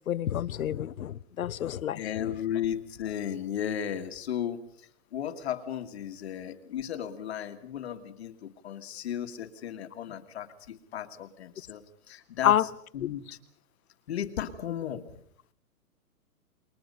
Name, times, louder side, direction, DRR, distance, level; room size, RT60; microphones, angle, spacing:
voice 1, 0.1-2.0 12.4-12.7, left 11 dB, 60° left, 18 dB, 0.8 m, -27 dB
voice 2, 2.0-12.5 12.9-13.2 14.1-15.0, left 10 dB, 40° left, 7 dB, 1.7 m, -35 dB
28.5 x 22.0 x 5.4 m, 0.64 s
hypercardioid pair, 165°, 46 cm